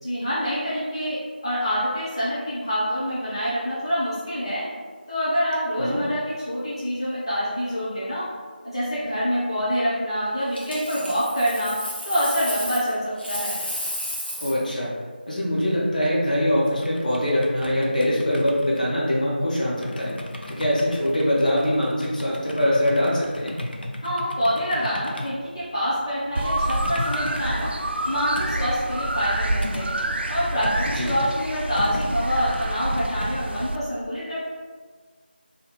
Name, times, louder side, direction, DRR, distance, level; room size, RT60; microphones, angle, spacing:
voice 1, 0.0-4.7 5.1-8.3 8.6-11.8 12.0-13.6 24.0-27.7 28.1-29.9 30.3-34.4, equal, 25° left, -12 dB, 0.7 m, -26 dB
Coin (dropping), 10.5-12.9 13.2-14.6 17.5-17.7, left 1 dB, 80° left, 1.1 m, -32 dB
voice 2, 14.4-14.9 15.3-20.1 20.5-23.5 30.9-31.1, left 1 dB, 50° left, -5 dB, 0.9 m, -23 dB
sound 1, 15.5-33.3, left 1 dB, 65° left, 0.5 m, -37 dB
sound 2, 26.4-33.8, right 1 dB, 85° right, 0.4 m, -27 dB
2.7 x 2.3 x 4.0 m, 1.5 s
figure-of-eight pair, 175°, 6 cm